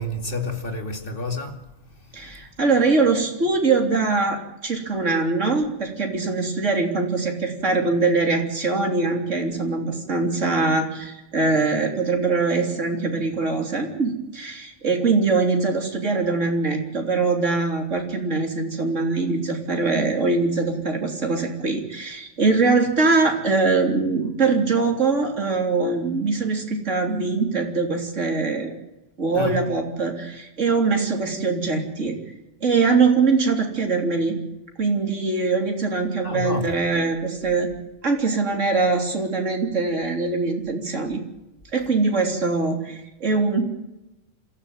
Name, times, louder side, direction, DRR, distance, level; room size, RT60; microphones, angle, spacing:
voice 1, 0.0-1.7 29.3-29.7 36.2-36.8, left 2 dB, 45° left, 2.8 m, -29 dB
voice 2, 2.1-28.7 29.2-32.2 32.6-34.4 34.8-37.7 38.0-41.2 41.7-43.7, right 4 dB, 70° right, 3.8 m, -22 dB
26.5 x 14.5 x 9.3 m
omnidirectional pair, 1.3 m